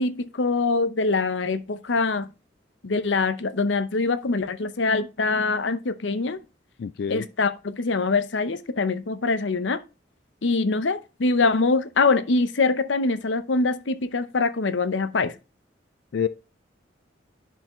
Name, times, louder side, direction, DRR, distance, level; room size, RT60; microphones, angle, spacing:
voice 1, 0.0-2.3 2.8-6.4 7.1-9.8 10.4-15.3, left 3 dB, 80° left, 0.7 m, -24 dB
voice 2, 6.8-7.3 16.1-16.3, left 7 dB, 60° left, 0.3 m, -27 dB
10.5 x 4.8 x 3.1 m
head